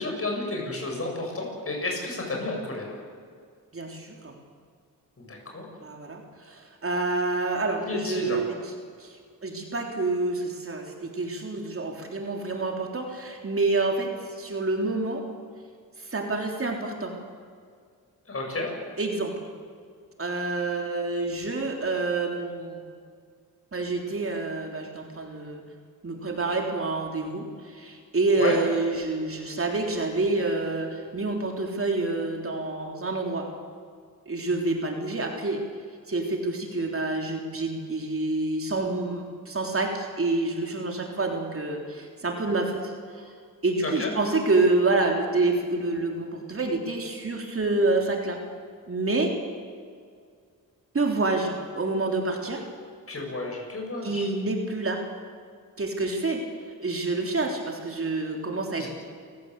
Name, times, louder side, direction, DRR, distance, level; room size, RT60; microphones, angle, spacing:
voice 1, 0.0-2.9 5.2-5.6 7.8-8.4 18.3-18.7 28.4-28.6 43.8-44.1 53.1-54.2 58.8-58.9, left 2 dB, 40° left, 0 dB, 8.0 m, -31 dB
voice 2, 3.7-4.4 5.8-8.7 9.0-9.2 9.4-15.2 16.0-17.2 19.0-19.3 20.2-22.8 23.7-25.6 26.0-33.5 34.3-35.6 36.1-43.2 43.6-48.4 48.9-49.3 50.9-52.6 54.0-55.0 55.8-56.4 56.8-58.9, right 3 dB, 40° right, 2 dB, 3.5 m, -27 dB
28.5 x 16.0 x 8.2 m, 2.1 s
cardioid pair, 85°, 35 cm